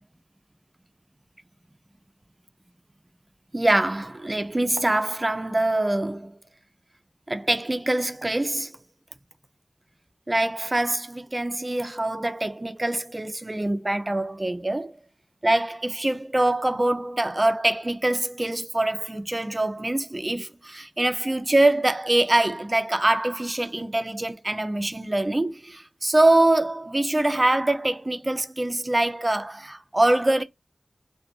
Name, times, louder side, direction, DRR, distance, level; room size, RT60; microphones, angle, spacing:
voice 1, 3.5-6.3 7.3-8.7 10.3-14.9 15.4-30.4, right 1 dB, 35° right, 0.3 m, -24 dB
2.4 x 2.2 x 2.6 m
wide cardioid pair, 60°, 0 cm